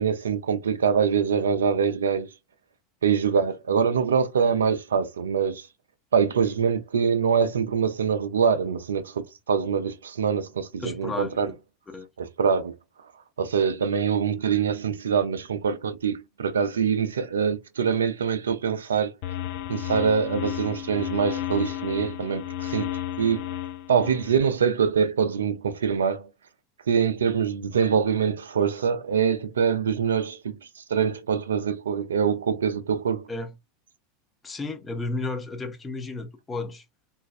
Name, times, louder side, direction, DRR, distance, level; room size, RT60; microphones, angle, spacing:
voice 1, 0.0-2.3 3.0-5.7 6.1-11.5 12.2-12.7 13.4-19.1 19.7-22.9 23.2-23.4 23.9-26.3 26.9-33.3, right 6 dB, 80° right, 0.5 m, -24 dB
voice 2, 10.8-11.3 11.9-12.1 33.3-33.5 34.4-36.8, left 3 dB, 20° left, 0.9 m, -32 dB
sound 1, 19.2-24.3, left 12 dB, 60° left, 0.4 m, -33 dB
3.1 x 2.5 x 2.3 m
hypercardioid pair, 85°, 0 cm